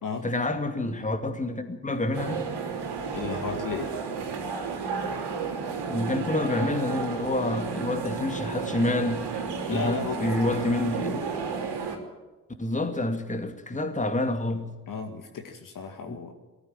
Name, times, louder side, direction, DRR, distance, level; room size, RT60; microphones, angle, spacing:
voice 1, 0.2-2.5 5.9-9.3 9.7-11.3 12.6-14.8 16.1-16.2, left 2 dB, 15° left, 2.6 m, -28 dB
sound 1, 2.1-12.0, right 5 dB, 55° right, 3.4 m, -32 dB
voice 2, 3.1-3.9 9.7-10.3 14.9-16.3, left 5 dB, 45° left, 2.0 m, -34 dB
20.5 x 14.0 x 9.1 m
figure-of-eight pair, 45°, 46 cm